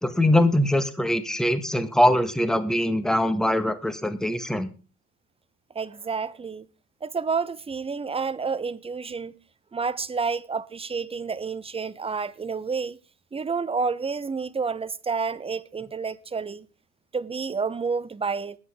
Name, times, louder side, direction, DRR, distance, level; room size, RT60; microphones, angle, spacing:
voice 1, 0.0-4.7, left 1 dB, ahead, 1.6 m, -22 dB
voice 2, 5.7-6.7 7.0-9.3 9.7-13.0 13.3-16.7 17.1-18.6, right 5 dB, 15° right, 0.9 m, -29 dB
20.5 x 8.2 x 3.7 m
hypercardioid pair, 65°, 35 cm